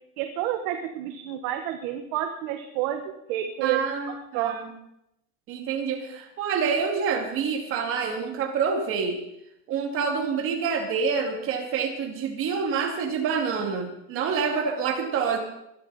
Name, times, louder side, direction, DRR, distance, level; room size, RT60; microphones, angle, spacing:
voice 1, 0.2-3.8 4.3-4.6, right 12 dB, 45° right, 5 dB, 1.4 m, -29 dB
voice 2, 3.6-4.7 5.5-9.2 9.7-15.4, right 6 dB, 30° right, 3 dB, 2.5 m, -27 dB
20.5 x 13.0 x 4.3 m, 0.80 s
supercardioid pair, 170°, 43 cm